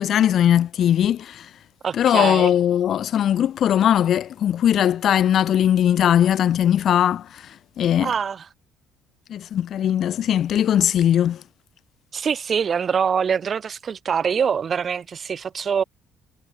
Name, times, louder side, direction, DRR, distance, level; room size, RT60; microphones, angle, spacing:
voice 1, 0.0-1.4 1.9-7.4 7.8-8.1 9.3-11.4, left 10 dB, 60° left, 1.6 m, -19 dB
voice 2, 1.8-2.5 8.0-8.4 12.1-15.8, right 7 dB, 45° right, 2.7 m, -24 dB
supercardioid pair, 70°, 0 cm